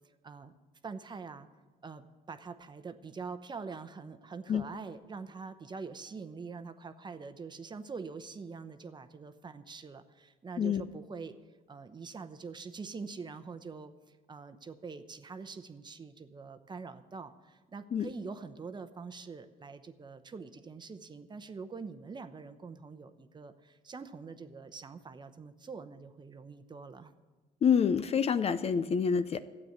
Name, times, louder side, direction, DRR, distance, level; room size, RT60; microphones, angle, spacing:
voice 1, 0.8-1.5 1.8-11.4 11.7-13.9 14.3-27.1, right 4 dB, 25° right, 10 dB, 0.8 m, -44 dB
voice 2, 27.6-29.4, left 7 dB, 35° left, 12 dB, 0.5 m, -27 dB
12.5 x 8.6 x 8.0 m, 1.2 s
cardioid pair, 110°, 17 cm